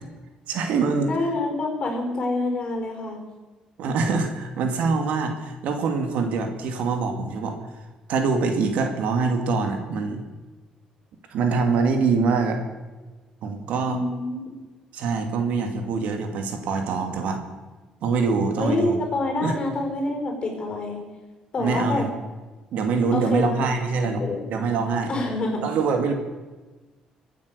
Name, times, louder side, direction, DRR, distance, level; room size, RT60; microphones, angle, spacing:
voice 1, 0.5-1.1 3.8-7.6 8.1-10.2 11.3-12.6 13.4-14.0 14.9-17.4 18.0-19.0 19.4-19.5 21.6-22.1 22.7-24.2 24.5-25.1 25.6-26.1, right 4 dB, 75° right, 5 dB, 2.2 m, -24 dB
voice 2, 1.1-3.2 13.8-14.5 18.6-21.0 21.5-22.1 23.1-23.7 24.0-24.5 25.1-25.7, left 2 dB, 40° left, 3 dB, 5.2 m, -27 dB
23.0 x 9.3 x 6.7 m, 1.3 s
cardioid pair, 115°, 2 cm